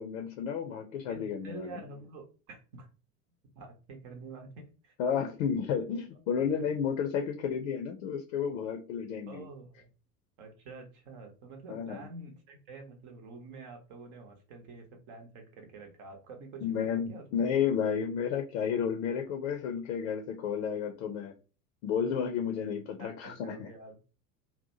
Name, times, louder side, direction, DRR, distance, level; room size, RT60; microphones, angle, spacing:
voice 1, 0.0-1.7 5.0-9.4 11.7-12.0 16.6-21.3 21.8-23.7, left 7 dB, 50° left, 4 dB, 0.6 m, -32 dB
voice 2, 1.1-2.9 3.5-4.9 9.3-9.9 10.4-17.2 23.0-24.0, right 3 dB, 45° right, 4 dB, 0.9 m, -47 dB
2.7 x 2.1 x 2.6 m, 0.35 s
figure-of-eight pair, 80°, 47 cm